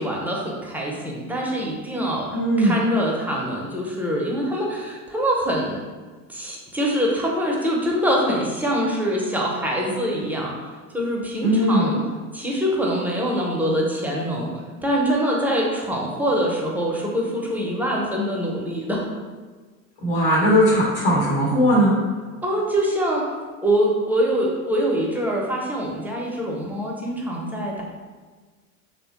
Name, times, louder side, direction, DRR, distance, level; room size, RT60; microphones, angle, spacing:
voice 1, 0.0-5.8 6.3-10.5 10.9-12.0 12.3-14.5 14.8-19.1 22.4-23.2 23.6-27.8, equal, 5° right, -2 dB, 0.4 m, -24 dB
voice 2, 2.3-2.8 11.4-11.9 20.0-21.9, equal, 80° left, -7 dB, 1.0 m, -18 dB
3.1 x 2.1 x 2.9 m, 1.4 s
hypercardioid pair, 80°, 43 cm